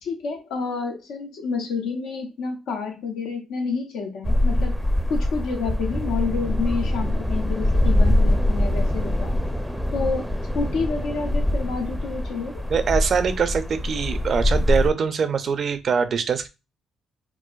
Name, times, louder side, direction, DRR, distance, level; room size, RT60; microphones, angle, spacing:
voice 1, 0.0-4.8 5.1-9.3 9.9-10.3 10.5-12.6, left 4 dB, 80° left, 0.8 m, -29 dB
sound 1, 4.2-14.9, left 1 dB, ahead, 0.5 m, -23 dB
voice 2, 12.7-16.5, right 6 dB, 55° right, 0.5 m, -23 dB
4.5 x 2.1 x 2.4 m
supercardioid pair, 65°, 0 cm